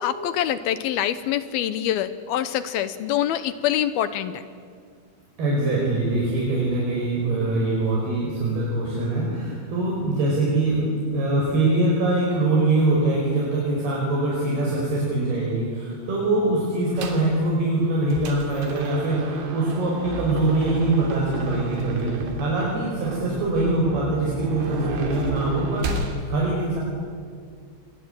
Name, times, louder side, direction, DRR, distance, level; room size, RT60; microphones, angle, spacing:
voice 1, 0.0-4.4, left 11 dB, 75° left, 13 dB, 2.4 m, -25 dB
voice 2, 5.4-26.8, right 2 dB, 60° right, -3 dB, 6.9 m, -23 dB
sound 1, 17.0-17.3 17.8-26.2, right 2 dB, 90° right, 5.4 m, -31 dB
28.0 x 23.5 x 9.0 m, 2.1 s
omnidirectional pair, 5.2 m